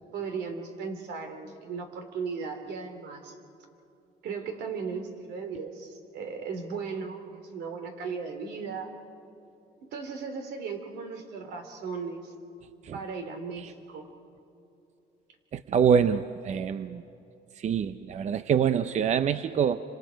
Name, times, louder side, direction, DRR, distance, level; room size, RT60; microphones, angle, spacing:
voice 1, 0.1-3.3 4.2-8.9 9.8-12.3 12.9-14.1 16.0-16.1, right 5 dB, 75° right, 5 dB, 3.2 m, -36 dB
voice 2, 15.5-17.0 17.6-19.8, right 7 dB, 45° right, 12 dB, 0.6 m, -25 dB
30.0 x 26.5 x 5.2 m, 2.8 s
cardioid pair, 110°, 17 cm